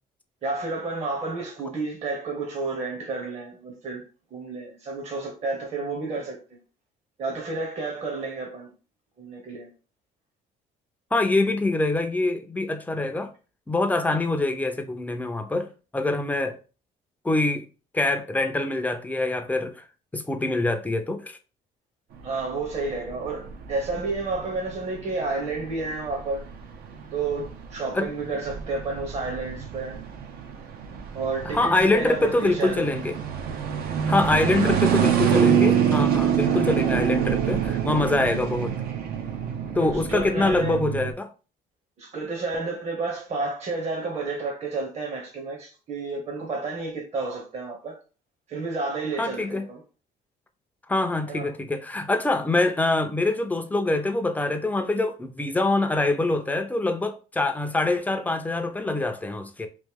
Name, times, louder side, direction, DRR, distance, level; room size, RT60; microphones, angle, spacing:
voice 1, 0.4-4.0 4.3-6.4 7.2-8.7 9.2-9.7 22.2-26.4 27.1-30.0 31.1-32.9 34.5-34.8 39.8-40.8 42.0-48.0 48.5-49.8 51.3-51.5, right 3 dB, 40° right, 1.0 m, -31 dB
voice 2, 11.1-13.3 13.7-16.6 17.2-17.7 17.9-19.8 20.1-21.4 27.9-28.1 31.4-33.1 34.1-38.8 39.7-41.3 49.2-49.6 50.9-59.7, left 2 dB, 10° left, 0.5 m, -24 dB
sound 1, 22.2-41.1, right 8 dB, 65° right, 0.7 m, -26 dB
3.1 x 2.6 x 3.5 m
cardioid pair, 110°, 17 cm